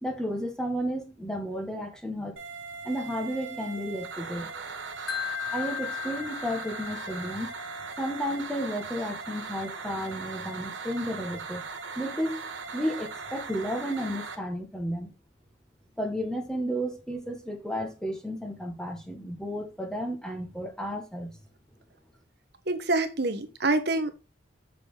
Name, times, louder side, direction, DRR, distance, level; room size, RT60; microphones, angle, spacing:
voice 1, 0.0-2.4 2.9-4.8 5.5-7.5 8.0-11.7 12.0-12.4 12.7-15.1 16.0-21.4, equal, 5° left, 1.7 m, -33 dB
sound 1, 2.4-14.4, right 4 dB, 70° right, 1.6 m, -39 dB
Wind chime, 5.1-8.2, left 12 dB, 55° left, 1.3 m, -37 dB
voice 2, 22.7-24.1, right 2 dB, 55° right, 1.2 m, -26 dB
7.0 x 6.5 x 3.9 m
head